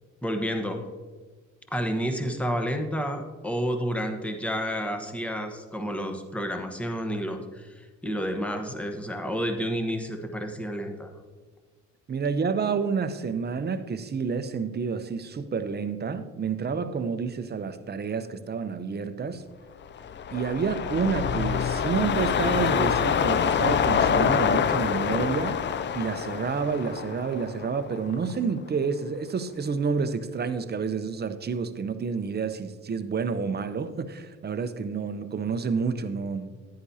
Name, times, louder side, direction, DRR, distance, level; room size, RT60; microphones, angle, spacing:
voice 1, 0.2-0.8 1.7-11.1, equal, 5° left, 1.1 m, -30 dB
voice 2, 12.1-19.4 20.3-25.6 25.9-36.6, right 5 dB, 35° right, 0.7 m, -29 dB
sound 1, 19.9-28.3 28.7-28.8, left 7 dB, 40° left, 0.4 m, -26 dB
10.5 x 9.7 x 2.8 m
cardioid pair, 90°, 30 cm